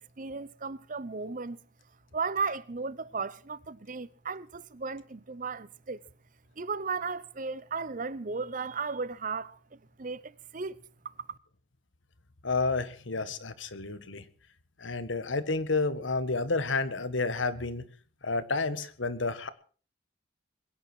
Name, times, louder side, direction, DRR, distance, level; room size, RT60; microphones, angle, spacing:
voice 1, 0.2-1.6 2.1-6.0 6.6-9.6 10.0-10.8, right 4 dB, 45° right, 0.7 m, -35 dB
voice 2, 12.4-14.2 14.8-17.8 18.2-19.5, left 3 dB, 85° left, 1.5 m, -30 dB
22.0 x 10.0 x 6.2 m
head